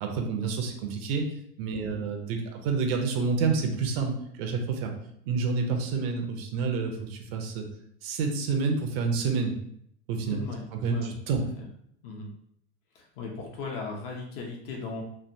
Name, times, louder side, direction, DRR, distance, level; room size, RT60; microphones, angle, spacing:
voice 1, 0.0-1.3 1.6-4.1 4.4-4.9 5.3-7.7 8.0-9.5 10.1-10.4 10.7-11.4, right 4 dB, 65° right, 3 dB, 0.8 m, -28 dB
voice 2, 10.2-10.6 10.9-11.1 11.6-11.7 12.0-12.3 12.9-15.0, left 4 dB, 55° left, 0 dB, 0.9 m, -37 dB
3.3 x 2.4 x 2.7 m, 0.71 s
supercardioid pair, 155°, 33 cm